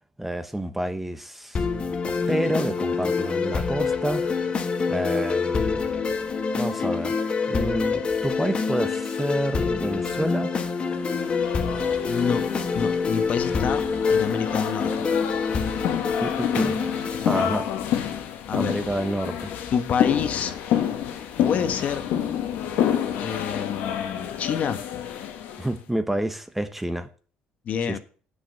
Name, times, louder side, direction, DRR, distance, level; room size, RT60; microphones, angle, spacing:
voice 1, 0.2-1.6 2.0-4.3 4.9-5.9 6.6-7.2 7.5-10.5 16.2-16.8 17.2-17.7 18.5-19.5 25.6-27.1, right 1 dB, 5° right, 1.0 m, -28 dB
sound 1, 1.5-17.5, left 5 dB, 35° left, 1.4 m, -26 dB
sound 2, 11.0-25.7, left 9 dB, 75° left, 1.6 m, -29 dB
voice 2, 12.1-12.5 12.7-15.1 18.5-18.8 19.7-20.5 21.4-22.1 23.2-24.8 27.6-28.0, left 7 dB, 50° left, 1.1 m, -28 dB
7.8 x 6.3 x 7.0 m
cardioid pair, 105°, 3 cm